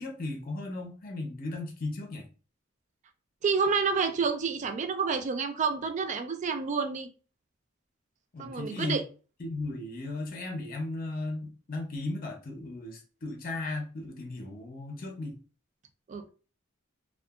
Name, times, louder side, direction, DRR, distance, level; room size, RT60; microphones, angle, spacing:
voice 1, 0.0-2.3 8.3-9.0 9.4-15.3, left 2 dB, 45° left, 0.6 m, -36 dB
voice 2, 3.4-7.1 8.4-9.0 16.1-16.3, right 5 dB, 35° right, 0.3 m, -29 dB
2.6 x 2.3 x 2.3 m
head